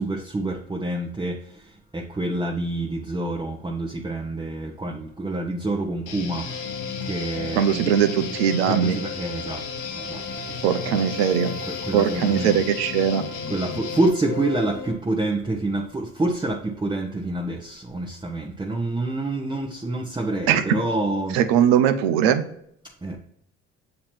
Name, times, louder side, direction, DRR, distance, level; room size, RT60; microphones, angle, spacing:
voice 1, 0.0-1.4 1.9-6.5 7.0-7.9 8.6-9.6 9.9-11.0 11.6-12.6 13.5-21.4 23.0-23.2, right 2 dB, 15° right, 0 dB, 0.8 m, -27 dB
Guitar, 6.1-14.1, left 6 dB, 70° left, 1.0 m, -35 dB
sound 1, 6.4-14.9, left 4 dB, 30° left, 1.3 m, -36 dB
voice 2, 7.5-8.9 10.6-11.5 11.9-13.2 20.5-20.8 21.3-22.4, right 9 dB, 90° right, 9 dB, 0.6 m, -20 dB
7.3 x 2.9 x 4.3 m, 0.70 s
supercardioid pair, 65°, 30 cm